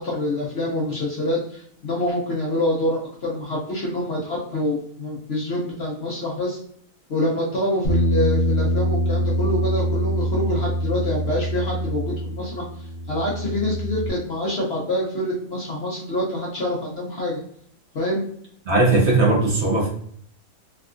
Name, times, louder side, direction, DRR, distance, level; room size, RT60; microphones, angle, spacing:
voice 1, 0.0-6.6 7.1-17.4 17.9-18.2, left 1 dB, 55° left, -3 dB, 0.8 m, -26 dB
Bass guitar, 7.8-14.1, equal, 80° left, 1.2 m, -24 dB
voice 2, 18.7-19.9, right 2 dB, 50° right, -3 dB, 1.0 m, -18 dB
3.5 x 2.2 x 2.4 m, 0.62 s
omnidirectional pair, 1.6 m